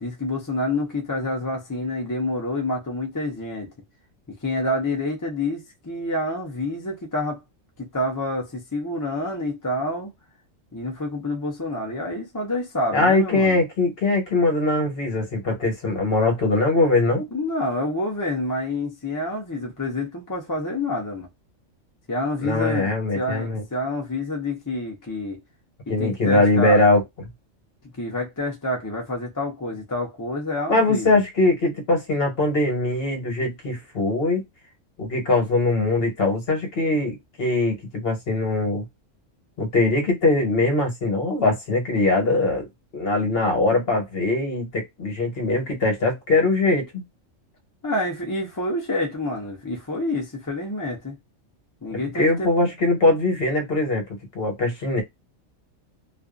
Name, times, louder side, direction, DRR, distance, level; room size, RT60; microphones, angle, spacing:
voice 1, 0.0-3.7 4.3-7.4 7.8-10.1 10.7-13.6 17.3-21.3 22.1-25.4 25.9-26.8 27.9-31.1 47.8-51.2 51.8-52.8, left 1 dB, 20° left, 0.5 m, -28 dB
voice 2, 12.9-17.3 22.4-23.6 25.9-27.0 30.7-34.4 35.0-38.8 39.6-42.7 42.9-47.0 51.9-54.1 54.3-55.0, left 2 dB, 50° left, 1.2 m, -21 dB
2.5 x 2.3 x 2.3 m
omnidirectional pair, 1.3 m